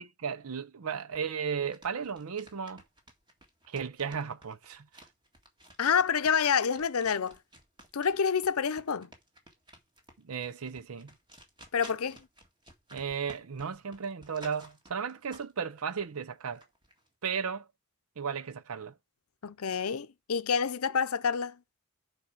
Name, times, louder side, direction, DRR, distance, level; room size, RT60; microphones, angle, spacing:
voice 1, 0.2-2.8 3.7-4.9 10.2-11.1 12.9-16.6 17.2-17.7 18.2-18.9, right 6 dB, 75° right, 0.6 m, -35 dB
sound 1, 1.7-15.6 16.0-17.1, right 1 dB, 20° right, 1.9 m, -54 dB
voice 2, 5.8-7.4 7.9-9.1 11.7-12.3 19.4-21.6, left 6 dB, 75° left, 0.7 m, -28 dB
8.7 x 4.8 x 5.8 m
head